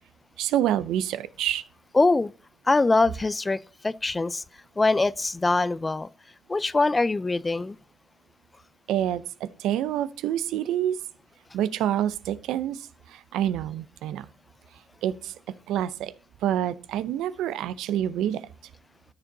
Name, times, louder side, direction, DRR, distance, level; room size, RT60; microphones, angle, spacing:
voice 1, 0.4-1.6 8.9-11.0 11.5-14.3 15.0-15.3 15.7-16.1 16.4-18.5, right 11 dB, 90° right, 0.7 m, -27 dB
voice 2, 1.9-2.3 2.7-3.6 3.8-4.4 4.8-6.1 6.5-7.8, left 3 dB, 20° left, 0.5 m, -23 dB
13.0 x 6.8 x 4.1 m
cardioid pair, 90°, 0 cm